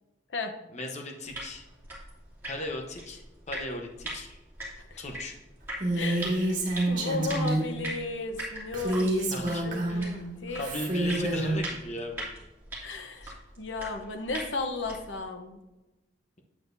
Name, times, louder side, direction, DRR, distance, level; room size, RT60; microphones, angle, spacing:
voice 1, 0.7-1.6 2.5-4.3 5.0-5.4 9.3-9.6 9.9-10.0 10.4-12.3 13.2-13.3, left 1 dB, 40° left, 2 dB, 1.0 m, -37 dB
sound 1, 1.3-15.2, right 1 dB, 15° right, 2.9 m, -42 dB
Female speech woman speaking, 5.8-7.7 8.7-10.1 10.6-11.6, right 1 dB, 45° right, 1.9 m, -28 dB
voice 2, 5.9-6.6 6.9-10.6 12.8-13.3 13.6-15.6, left 3 dB, 80° left, 5 dB, 1.0 m, -35 dB
8.7 x 8.5 x 2.7 m, 1.0 s
head